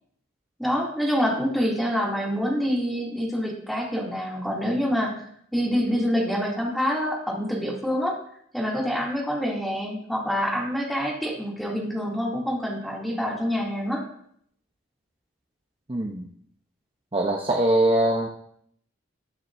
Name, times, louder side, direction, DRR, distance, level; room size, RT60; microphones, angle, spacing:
voice 1, 0.6-5.2 5.5-8.2 8.5-14.0, equal, ahead, -4 dB, 2.7 m, -26 dB
voice 2, 15.9-16.3 17.1-18.3, right 1 dB, 25° right, 1 dB, 0.8 m, -22 dB
20.5 x 7.5 x 2.7 m, 0.67 s
head